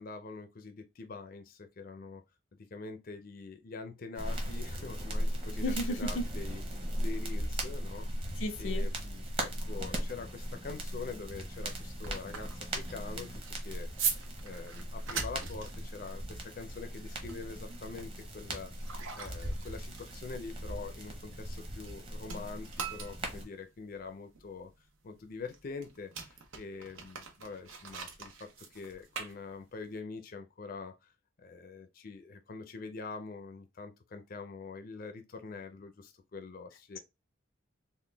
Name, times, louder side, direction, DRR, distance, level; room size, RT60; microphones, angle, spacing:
voice 1, 0.0-2.2 2.7-8.3 8.6-13.9 14.4-18.7 19.1-31.1 31.4-37.0, left 4 dB, 45° left, 0.4 m, -44 dB
sound 1, 4.2-23.4, equal, 30° right, 1.0 m, -38 dB
voice 2, 5.6-6.3 8.4-8.9, equal, 90° left, 0.7 m, -34 dB
sound 2, 11.7-22.0 22.2-29.9, right 6 dB, 85° right, 0.9 m, -42 dB
3.8 x 2.2 x 3.3 m
head